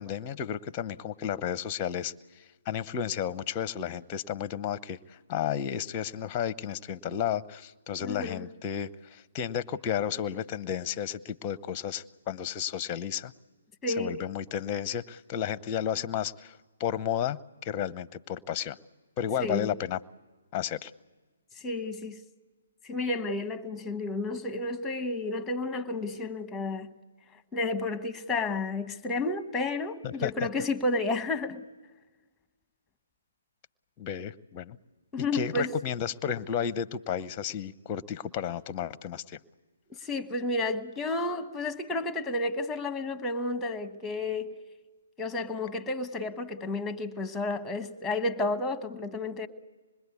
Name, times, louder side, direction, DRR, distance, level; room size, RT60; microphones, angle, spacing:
voice 1, 0.0-13.3 14.0-18.8 19.2-20.0 20.5-20.9 30.0-30.5 34.0-34.8 35.2-39.4, left 9 dB, 25° left, 0.7 m, -33 dB
voice 2, 8.0-8.5 13.8-14.2 19.4-19.7 21.6-22.2 22.8-26.9 27.5-31.6 35.1-35.7 40.0-44.5 45.2-49.5, left 2 dB, 10° left, 1.2 m, -31 dB
26.0 x 21.0 x 8.4 m
hypercardioid pair, 140°, 0 cm